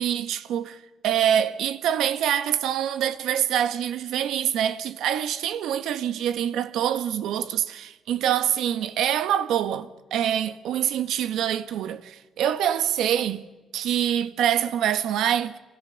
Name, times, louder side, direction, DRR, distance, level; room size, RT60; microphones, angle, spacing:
voice 1, 0.0-13.5 13.7-15.6, right 10 dB, 85° right, 1.5 m, -25 dB
27.0 x 24.0 x 6.7 m
cardioid pair, 145°, 0 cm